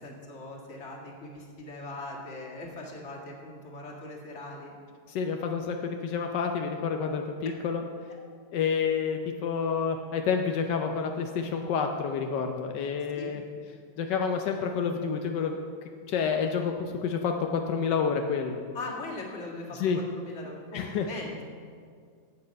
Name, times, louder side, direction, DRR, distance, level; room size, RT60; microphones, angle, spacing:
voice 1, 0.0-4.8 13.1-13.4 18.7-21.4, left 2 dB, 40° left, -2 dB, 2.1 m, -40 dB
voice 2, 5.1-7.8 8.5-13.4 14.0-15.7 16.1-18.6 19.7-20.0 20.7-21.1, left 6 dB, 85° left, 4 dB, 1.4 m, -29 dB
13.0 x 8.7 x 5.2 m, 2.1 s
omnidirectional pair, 1.9 m